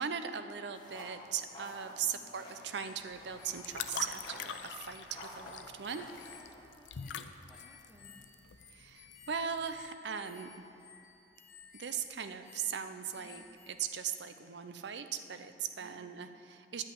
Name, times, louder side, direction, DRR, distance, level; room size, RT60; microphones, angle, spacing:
voice 1, 0.0-6.1 8.7-10.7 11.7-16.8, right 7 dB, 70° right, 9 dB, 0.6 m, -39 dB
sound 1, 0.7-6.4, left 1 dB, 25° left, 1.5 m, -51 dB
sound 2, 2.7-13.8, left 6 dB, 50° left, 1.8 m, -58 dB
sound 3, 3.1-9.9, left 7 dB, 80° left, 0.4 m, -45 dB
voice 2, 6.5-8.3 13.1-13.4 15.8-16.0, equal, 5° right, -1 dB, 1.1 m, -61 dB
10.0 x 5.7 x 8.5 m, 2.8 s
head